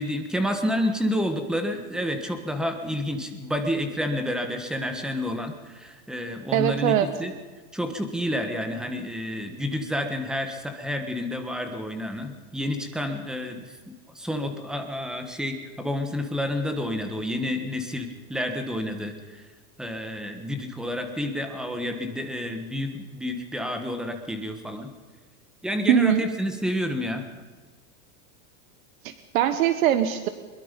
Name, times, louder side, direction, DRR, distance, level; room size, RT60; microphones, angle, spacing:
voice 1, 0.0-7.3 7.7-13.8 14.1-19.4 19.8-24.9 25.6-27.3, left 1 dB, ahead, 6 dB, 1.3 m, -29 dB
voice 2, 6.5-7.1 25.9-26.2 29.0-30.3, right 10 dB, 70° right, 11 dB, 1.3 m, -21 dB
22.5 x 22.0 x 5.3 m, 1.4 s
supercardioid pair, 175°, 43 cm